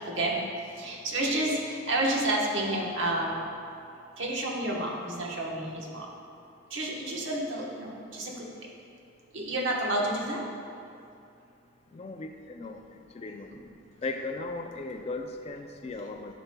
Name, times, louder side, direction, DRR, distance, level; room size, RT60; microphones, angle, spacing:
voice 1, 0.1-0.4 0.8-3.5 4.2-6.1 6.7-8.5 9.3-10.4, right 1 dB, 75° right, -2 dB, 1.1 m, -30 dB
voice 2, 11.9-12.8 13.1-13.5 14.0-16.3, left 3 dB, 30° left, 5 dB, 0.3 m, -37 dB
11.0 x 5.8 x 2.2 m, 2.5 s
head